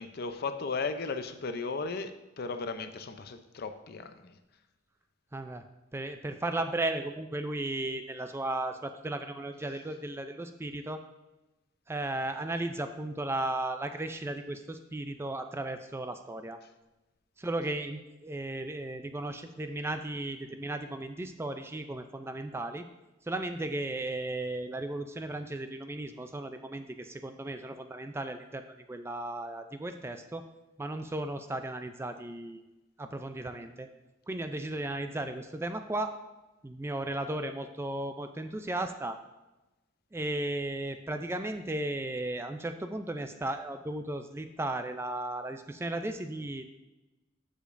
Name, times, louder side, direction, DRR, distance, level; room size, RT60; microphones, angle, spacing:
voice 1, 0.0-4.3, left 4 dB, 50° left, 9 dB, 0.5 m, -36 dB
voice 2, 5.3-5.6 5.9-11.0 11.9-16.6 17.4-22.8 23.3-30.4 30.8-32.6 33.0-33.9 34.3-36.1 36.6-39.2 40.1-46.7, right 2 dB, 15° right, 7 dB, 0.3 m, -35 dB
13.0 x 5.1 x 2.5 m, 1.0 s
head